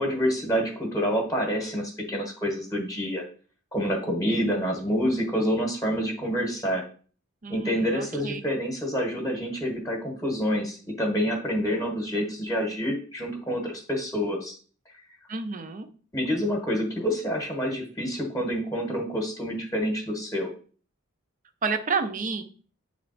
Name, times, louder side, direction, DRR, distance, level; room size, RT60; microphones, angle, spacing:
voice 1, 0.0-3.2 3.7-6.8 7.5-14.5 16.1-20.5, equal, 15° left, 2 dB, 1.1 m, -27 dB
voice 2, 7.4-8.4 15.3-15.9 21.6-22.4, right 4 dB, 35° right, 9 dB, 0.6 m, -30 dB
8.0 x 3.3 x 4.0 m, 0.41 s
head